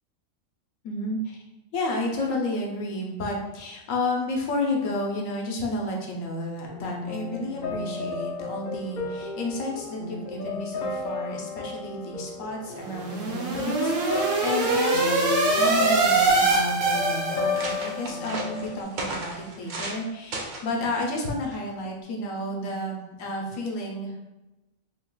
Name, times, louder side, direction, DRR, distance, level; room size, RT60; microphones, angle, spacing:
voice 1, 0.8-1.4 1.7-24.3, left 1 dB, 85° left, 0 dB, 1.1 m, -31 dB
sound 1, 6.7-18.8, left 4 dB, 55° left, 0.5 m, -33 dB
sound 2, 12.8-17.8, right 3 dB, 75° right, 1.1 m, -23 dB
sound 3, 15.5-15.6 15.8-16.4 17.0-17.1 17.3-20.0 20.3-20.7 21.5-21.8, right 2 dB, 60° right, 0.5 m, -35 dB
3.7 x 3.2 x 2.3 m, 1.0 s
omnidirectional pair, 1.4 m